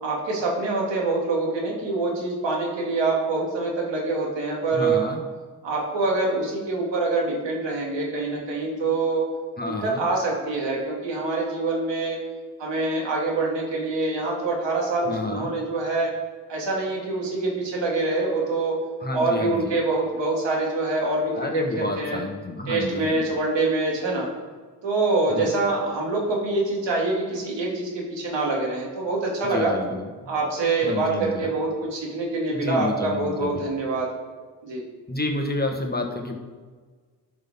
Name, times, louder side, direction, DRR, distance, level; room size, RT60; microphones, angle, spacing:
voice 1, 0.0-5.0 5.6-9.2 9.7-12.2 12.6-16.1 16.5-18.8 19.1-22.2 22.7-24.3 24.8-29.7 30.3-34.1 34.6-34.8, right 3 dB, 75° right, -2 dB, 2.7 m, -25 dB
voice 2, 4.7-5.2 9.6-10.1 15.0-15.5 19.0-19.8 21.3-23.2 25.3-25.5 29.4-30.3 30.8-31.5 32.5-33.7 35.1-36.4, left 2 dB, 20° left, 2 dB, 1.5 m, -30 dB
12.0 x 6.0 x 3.7 m, 1.4 s
cardioid pair, 65°, 43 cm